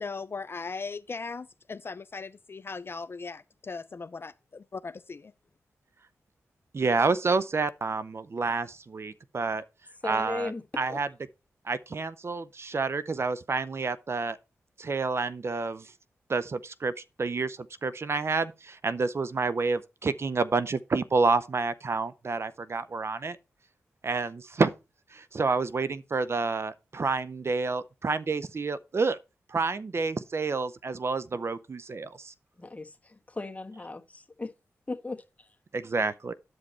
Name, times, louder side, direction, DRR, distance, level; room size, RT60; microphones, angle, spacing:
voice 1, 0.0-5.3, left 4 dB, 45° left, 0.4 m, -38 dB
voice 2, 6.7-9.6 10.0-10.5 10.8-11.1 11.7-14.4 14.8-15.9 16.3-16.9 17.2-23.4 24.0-24.7 25.1-29.2 29.5-32.3 35.7-36.3, right 4 dB, 50° right, 0.5 m, -29 dB
voice 3, 10.0-10.6 10.9-11.0 32.6-34.5 34.9-35.2, left 3 dB, 25° left, 1.3 m, -37 dB
9.3 x 5.2 x 4.3 m
cardioid pair, 45°, 6 cm